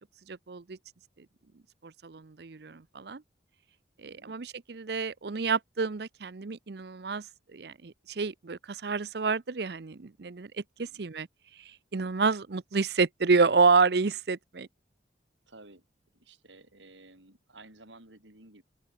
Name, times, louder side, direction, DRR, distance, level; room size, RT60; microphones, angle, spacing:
voice 1, 0.3-0.8 1.2-1.3 1.8-3.2 4.0-10.5 11.0-11.3 11.6-14.7, right 4 dB, 60° right, 0.6 m, -29 dB
voice 2, 4.0-4.4 10.8-11.1 15.5-15.9 16.1-18.6, right 2 dB, 80° right, 5.6 m, -54 dB
open air
head